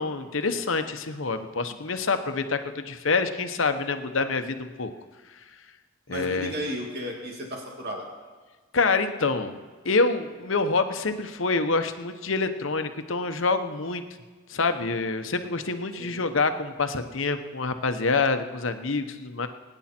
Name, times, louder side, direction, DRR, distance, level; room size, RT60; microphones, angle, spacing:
voice 1, 0.0-4.9 6.1-6.5 8.7-14.0 14.5-19.5, left 4 dB, 70° left, 8 dB, 1.0 m, -26 dB
voice 2, 6.1-8.0 16.0-16.2, equal, 50° right, 0 dB, 2.3 m, -34 dB
23.0 x 9.9 x 4.4 m, 1.4 s
head